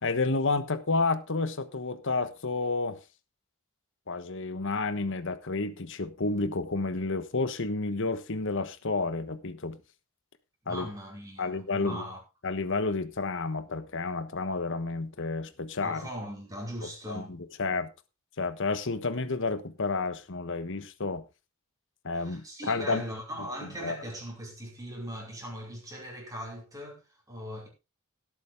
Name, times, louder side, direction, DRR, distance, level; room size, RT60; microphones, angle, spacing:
voice 1, 0.0-3.0 4.1-9.8 10.7-10.9 11.4-12.0 12.4-16.0 17.1-17.9 18.4-21.2 22.0-23.0 23.8-24.0, left 3 dB, 60° left, 1.2 m, -30 dB
voice 2, 10.7-12.2 15.8-17.3 22.1-27.7, equal, 15° right, 5.0 m, -40 dB
17.5 x 8.5 x 3.5 m
head